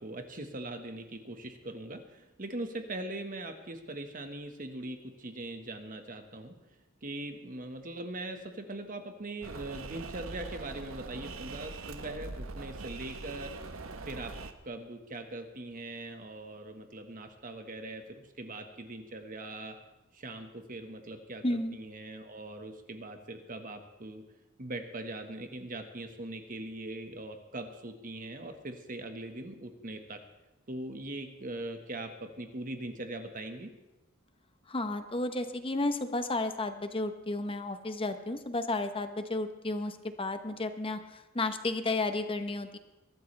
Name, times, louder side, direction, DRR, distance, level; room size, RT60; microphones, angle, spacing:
voice 1, 0.0-6.6 7.0-13.5 14.0-14.3 14.6-19.8 20.1-24.2 24.6-30.2 30.7-33.7, right 2 dB, 40° right, 6 dB, 1.5 m, -41 dB
sound 1, 9.4-14.5, right 3 dB, 75° right, 1.1 m, -42 dB
voice 2, 21.4-21.8 34.7-42.8, left 2 dB, 25° left, 8 dB, 0.9 m, -32 dB
22.0 x 13.0 x 3.4 m, 1.0 s
head